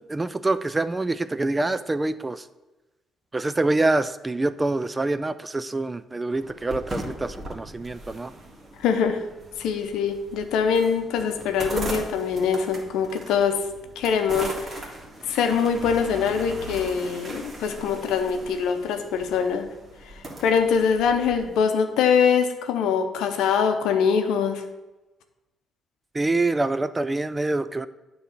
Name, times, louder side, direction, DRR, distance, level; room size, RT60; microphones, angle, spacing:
voice 1, 0.1-2.5 3.3-8.3 26.1-27.9, right 2 dB, 25° right, 13 dB, 0.4 m, -25 dB
sound 1, 6.3-21.6, right 1 dB, 40° right, 2.0 m, -39 dB
voice 2, 8.8-9.2 9.6-13.6 14.0-14.9 15.3-19.7 20.4-24.6, left 6 dB, 70° left, 7 dB, 0.7 m, -23 dB
8.9 x 3.2 x 6.6 m, 1.1 s
hypercardioid pair, 45°, 0 cm